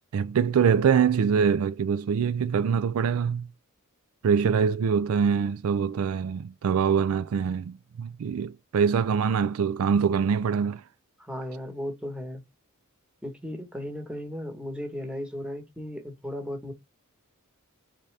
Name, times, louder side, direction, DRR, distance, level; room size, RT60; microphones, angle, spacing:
voice 1, 0.1-3.5 4.2-10.8, right 6 dB, 75° right, 0.4 m, -24 dB
voice 2, 11.2-12.4 13.2-16.7, equal, 5° right, 1.2 m, -36 dB
4.1 x 3.6 x 3.3 m
head